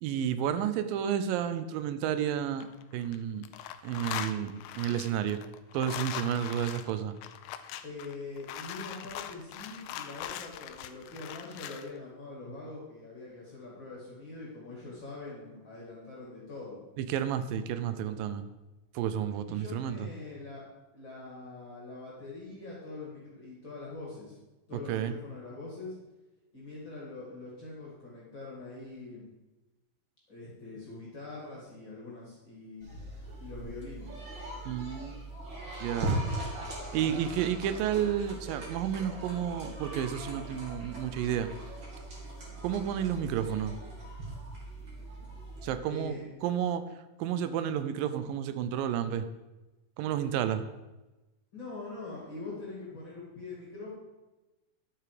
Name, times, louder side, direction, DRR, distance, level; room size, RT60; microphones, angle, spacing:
voice 1, 0.0-2.7 2.9-3.4 3.8-5.4 5.7-7.1 17.0-18.4 19.0-20.1 24.7-25.2 34.7-35.2 35.8-36.2 36.9-41.5 42.6-43.7 45.6-46.8 47.2-49.3 50.0-50.6, right 9 dB, 85° right, 11 dB, 2.3 m, -31 dB
sound 1, 2.4-3.2 3.4-11.9, left 11 dB, 85° left, 2.4 m, -41 dB
voice 2, 7.8-16.8 19.4-20.6 20.9-24.4 24.7-25.9 26.5-29.3 30.3-32.9 33.4-34.3 45.9-46.5 51.5-53.9, left 3 dB, 35° left, -5 dB, 2.8 m, -43 dB
sound 2, 32.8-45.7, right 1 dB, 35° right, 3.3 m, -39 dB
11.0 x 7.9 x 5.0 m, 1.1 s
omnidirectional pair, 4.0 m